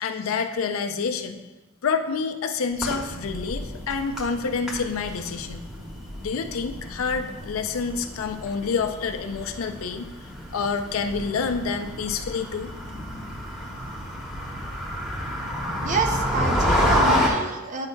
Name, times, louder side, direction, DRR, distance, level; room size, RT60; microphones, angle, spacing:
voice 1, 0.0-1.4 1.8-5.7 6.2-10.1 10.5-12.7, left 5 dB, 70° left, 7 dB, 0.5 m, -28 dB
sound 1, 2.7-17.3, equal, 5° right, 1.1 m, -29 dB
voice 2, 15.8-17.9, right 3 dB, 35° right, 4 dB, 0.6 m, -28 dB
8.7 x 5.7 x 2.3 m, 1.1 s
head